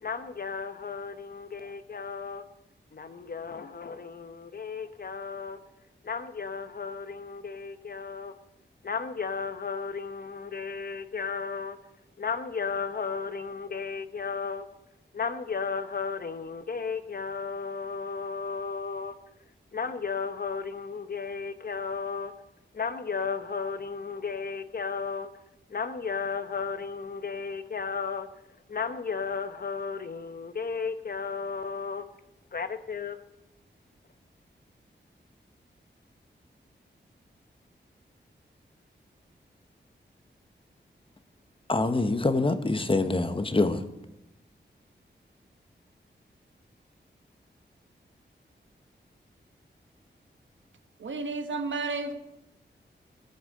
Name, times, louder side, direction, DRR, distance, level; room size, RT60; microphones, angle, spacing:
voice 1, 0.0-2.4 2.9-5.6 6.0-8.3 8.8-11.8 12.2-14.6 15.1-19.1 19.7-22.3 22.7-25.3 25.7-28.3 28.7-32.0 32.5-33.2, left 5 dB, 50° left, 1.1 m, -34 dB
voice 2, 41.7-43.8, left 2 dB, 30° left, 1.1 m, -25 dB
voice 3, 51.0-52.1, right 3 dB, 85° right, 1.4 m, -31 dB
17.5 x 8.0 x 8.7 m
wide cardioid pair, 140°, 19 cm